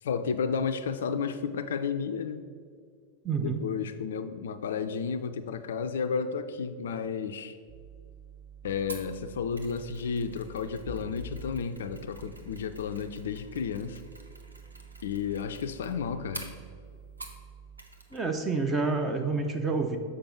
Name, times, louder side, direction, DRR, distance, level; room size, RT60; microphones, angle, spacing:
voice 1, 0.0-2.4 3.4-7.6 8.6-14.0 15.0-16.5, left 6 dB, 60° left, 10 dB, 0.4 m, -32 dB
voice 2, 3.2-3.6 18.1-20.0, right 4 dB, 20° right, 5 dB, 0.7 m, -28 dB
sound 1, 7.7-17.8, right 8 dB, 40° right, 1.2 m, -50 dB
Mechanisms, 8.9-17.5 17.8-18.2 18.5-18.6, right 1 dB, 80° right, 0.9 m, -48 dB
sound 2, 10.9-13.7, left 1 dB, 65° right, 2.1 m, -45 dB
6.9 x 5.0 x 5.9 m, 2.1 s
figure-of-eight pair, 90°, 0 cm